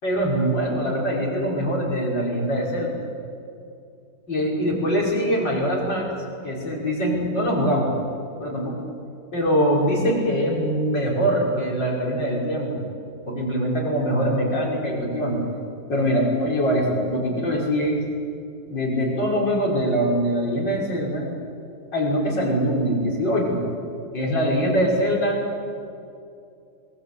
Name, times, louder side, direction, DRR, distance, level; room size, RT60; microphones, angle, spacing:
voice 1, 0.0-3.0 4.3-6.1 6.4-7.9 8.4-8.8 9.3-12.8 13.2-15.4 15.9-18.0 18.7-21.3 21.9-23.7 24.1-25.4, equal, 80° left, -2 dB, 6.4 m, -23 dB
27.5 x 23.0 x 8.4 m, 2.5 s
omnidirectional pair, 1.9 m